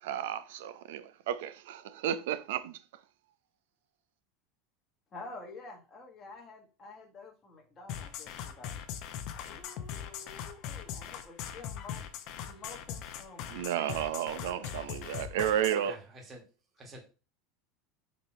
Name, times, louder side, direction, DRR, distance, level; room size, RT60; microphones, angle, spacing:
voice 1, 0.0-2.8 13.5-15.9, right 10 dB, 80° right, 0.7 m, -32 dB
voice 2, 5.1-8.7 9.4-12.2 12.4-14.0 14.5-14.8, left 3 dB, 20° left, 1.3 m, -49 dB
sound 1, 7.9-15.9, left 9 dB, 40° left, 0.7 m, -40 dB
voice 3, 15.8-16.4 16.7-17.0, right 1 dB, 15° right, 1.5 m, -48 dB
5.2 x 4.3 x 4.3 m
supercardioid pair, 175°, 0 cm